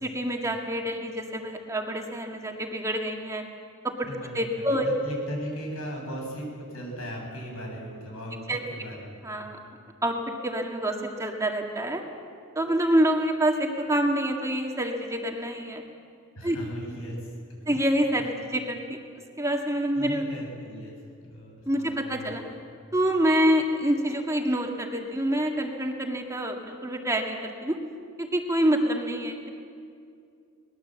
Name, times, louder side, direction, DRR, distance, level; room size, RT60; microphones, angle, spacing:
voice 1, 0.0-3.4 3.8-3.9 4.3-4.9 8.5-8.6 9.2-9.6 10.0-10.2 10.4-12.0 12.6-15.8 16.4-16.6 17.7-19.0 19.4-20.3 21.7-22.4 22.9-27.8 28.2-29.5, right 1 dB, 15° right, 2 dB, 1.8 m, -26 dB
voice 2, 4.1-9.1 16.3-17.3 17.7-17.8 19.9-21.0 21.3-22.3, equal, 85° left, 0 dB, 7.6 m, -37 dB
22.5 x 20.0 x 7.7 m, 2.3 s
head